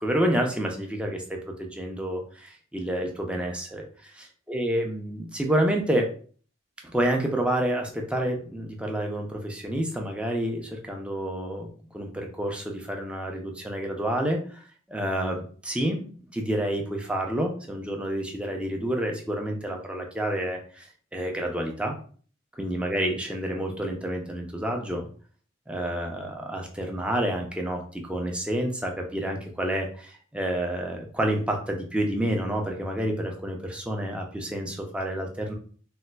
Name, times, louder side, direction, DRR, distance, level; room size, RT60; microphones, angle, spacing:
voice 1, 0.0-6.1 6.9-14.6 14.9-16.0 16.3-21.9 22.5-25.1 25.7-35.5, right 1 dB, 5° right, 1 dB, 0.4 m, -29 dB
4.1 x 2.4 x 2.2 m, 0.44 s
head